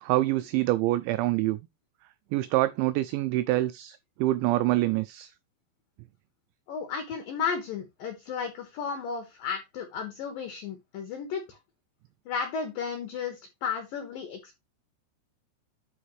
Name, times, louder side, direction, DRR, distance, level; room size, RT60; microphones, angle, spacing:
voice 1, 0.0-1.6 2.3-5.3, right 17 dB, 85° right, 2.6 m, -26 dB
voice 2, 6.7-11.6 12.3-14.6, left 6 dB, 70° left, 2.2 m, -34 dB
11.5 x 4.9 x 3.1 m
omnidirectional pair, 5.8 m